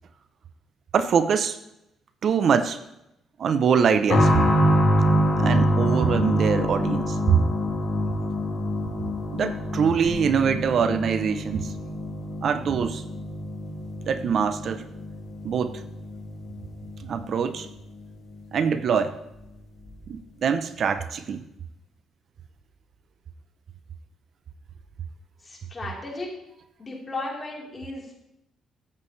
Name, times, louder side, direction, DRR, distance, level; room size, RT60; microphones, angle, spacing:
voice 1, 0.9-1.6 2.2-2.8 3.4-4.3 5.4-7.4 9.3-11.7 12.4-13.0 14.1-14.8 15.4-15.8 17.0-17.7 18.5-19.2 20.1-21.4, right 7 dB, 60° right, 11 dB, 0.6 m, -23 dB
sound 1, 4.1-18.5 18.8-18.9 19.8-20.0, equal, 60° left, 3.9 m, -26 dB
voice 2, 25.4-26.3 26.8-28.3, left 2 dB, 30° left, -3 dB, 3.8 m, -35 dB
13.0 x 8.5 x 3.2 m, 0.84 s
cardioid pair, 90°, 0 cm